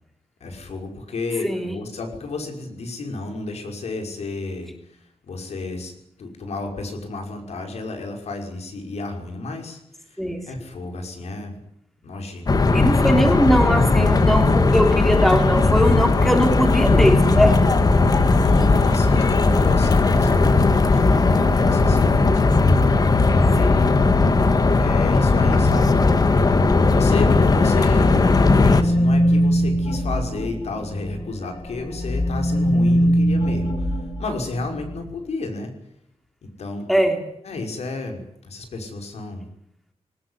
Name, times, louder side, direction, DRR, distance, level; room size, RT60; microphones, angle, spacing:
voice 1, 0.4-11.6 12.0-12.9 13.6-13.8 18.4-22.5 23.3-23.8 24.8-26.0 26.9-35.7 36.4-36.9 37.4-39.5, left 3 dB, 80° left, 5 dB, 5.8 m, -32 dB
sound 1, 12.5-28.8, left 3 dB, 35° left, 1.7 m, -17 dB
voice 2, 12.7-17.6 23.6-23.9 36.9-37.2, equal, ahead, 5 dB, 3.3 m, -20 dB
sound 2, 27.4-31.3 31.7-35.0, equal, 50° left, 4.6 m, -22 dB
21.5 x 19.0 x 9.8 m, 0.74 s
wide cardioid pair, 165°, 11 cm